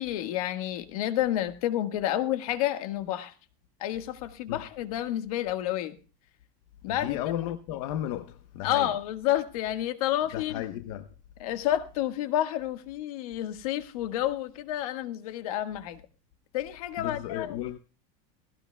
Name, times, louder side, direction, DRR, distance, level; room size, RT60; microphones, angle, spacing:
voice 1, 0.0-3.3 3.8-6.0 6.8-7.2 8.6-10.6 11.4-16.0 16.5-17.6, left 12 dB, 80° left, 1.6 m, -30 dB
voice 2, 6.9-8.9 10.3-11.1 17.0-17.8, left 12 dB, 65° left, 1.0 m, -34 dB
17.5 x 17.0 x 2.3 m
supercardioid pair, 165°, 18 cm